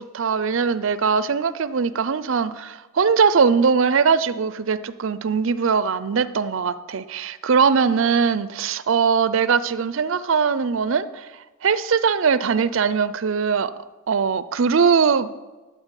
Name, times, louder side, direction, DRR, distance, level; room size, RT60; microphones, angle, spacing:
voice 1, 0.0-11.3 11.6-13.7 14.1-15.3, right 5 dB, 65° right, 15 dB, 0.5 m, -21 dB
12.5 x 4.2 x 8.2 m, 1.2 s
head